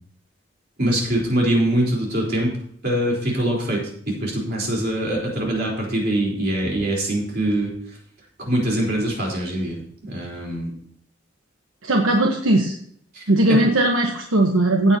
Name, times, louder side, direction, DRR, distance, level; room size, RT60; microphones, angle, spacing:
voice 1, 0.8-2.6 2.8-7.7 8.4-10.8 13.1-13.6, right 1 dB, 45° right, -2 dB, 3.9 m, -23 dB
voice 2, 11.8-12.7 13.3-15.0, right 1 dB, 75° right, 1 dB, 1.2 m, -18 dB
15.0 x 8.8 x 2.8 m, 0.62 s
head